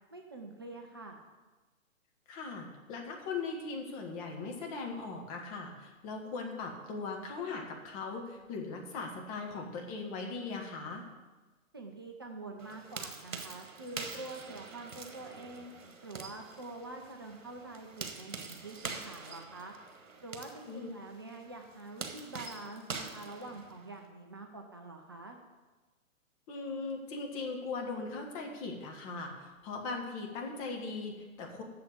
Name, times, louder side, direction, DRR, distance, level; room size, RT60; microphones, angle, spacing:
voice 1, 0.1-1.2 11.7-15.7 16.0-19.7 20.2-25.4, right 2 dB, 20° right, 2 dB, 0.4 m, -46 dB
voice 2, 2.3-11.1 20.7-20.9 26.5-31.6, left 4 dB, 25° left, 1 dB, 1.5 m, -39 dB
sound 1, 12.6-24.1, right 4 dB, 65° right, 1.5 m, -45 dB
7.6 x 6.9 x 8.2 m, 1.2 s
figure-of-eight pair, 125°, 41 cm